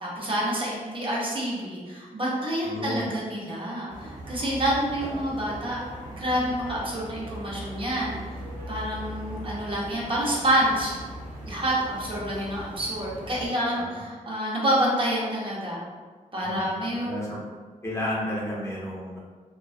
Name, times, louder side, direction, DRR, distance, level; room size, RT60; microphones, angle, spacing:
voice 1, 0.0-5.8 6.2-8.2 8.7-11.0 11.5-15.8 16.3-17.1, equal, 40° right, -5 dB, 0.6 m, -28 dB
voice 2, 2.6-3.1 13.7-14.0 16.4-17.4 17.8-19.2, left 1 dB, 20° left, -6 dB, 0.6 m, -32 dB
sound 1, 3.9-13.5, right 1 dB, 90° right, 0.6 m, -39 dB
2.3 x 2.3 x 2.4 m, 1.5 s
wide cardioid pair, 110°, 14 cm